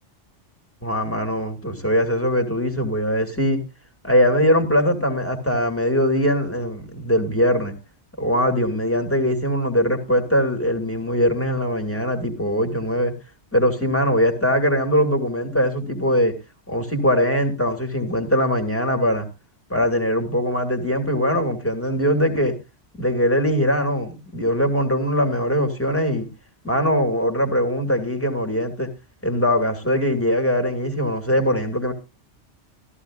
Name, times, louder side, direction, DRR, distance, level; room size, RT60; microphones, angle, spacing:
voice 1, 0.8-3.6 4.0-7.7 8.2-13.1 13.5-16.3 16.7-19.3 19.7-22.6 23.0-26.3 26.6-28.9 29.2-31.9, equal, 10° left, 2.3 m, -21 dB
14.5 x 14.0 x 2.4 m
omnidirectional pair, 1.2 m